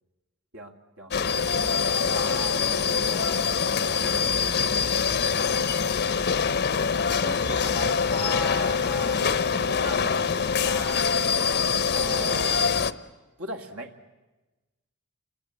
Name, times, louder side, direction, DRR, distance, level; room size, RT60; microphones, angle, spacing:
voice 1, 0.5-1.1 1.6-5.7 7.2-11.1 11.9-12.7 13.4-13.9, right 1 dB, 70° right, 3 dB, 2.0 m, -39 dB
sound 1, 1.1-12.9, left 6 dB, 50° left, 0.8 m, -24 dB
28.0 x 22.0 x 8.4 m, 1.1 s
head